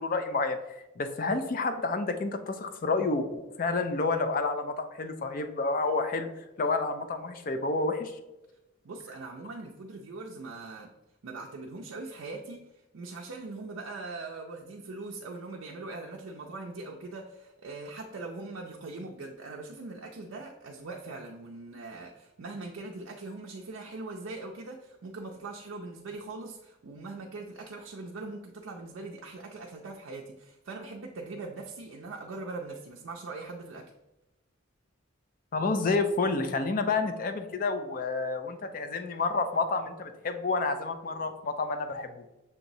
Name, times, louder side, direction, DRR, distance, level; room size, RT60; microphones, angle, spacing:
voice 1, 0.0-6.3 6.6-8.2 35.5-42.3, left 3 dB, 40° left, 7 dB, 0.4 m, -29 dB
voice 2, 8.8-10.9 11.2-33.9, right 3 dB, 70° right, 0 dB, 0.4 m, -41 dB
6.6 x 3.0 x 2.6 m, 0.97 s
head